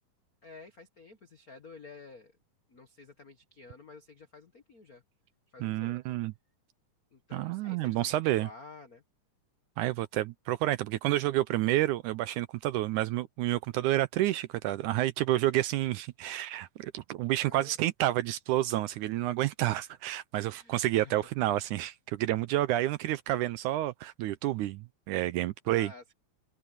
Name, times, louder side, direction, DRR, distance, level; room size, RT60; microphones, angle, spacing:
voice 1, 0.4-2.3 2.7-5.0 5.5-6.0 7.1-9.0 17.4-17.7 20.5-21.1 25.7-26.1, left 3 dB, 85° left, 0.8 m, -51 dB
voice 2, 5.6-6.3 7.3-8.5 9.8-25.9, right 15 dB, 75° right, 1.9 m, -29 dB
omnidirectional pair, 4.0 m